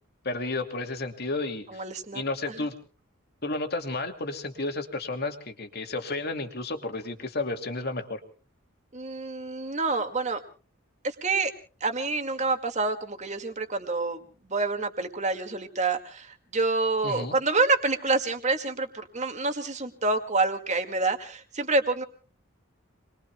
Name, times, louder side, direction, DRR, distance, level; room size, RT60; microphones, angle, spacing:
voice 1, 0.2-1.8 2.1-2.7 3.4-8.2 17.0-17.4, left 2 dB, 50° left, 5 dB, 2.6 m, -32 dB
voice 2, 1.7-2.6 8.9-10.4 11.0-11.5 11.8-22.0, right 3 dB, 35° right, 6 dB, 2.1 m, -27 dB
28.5 x 22.0 x 2.3 m, 0.39 s
head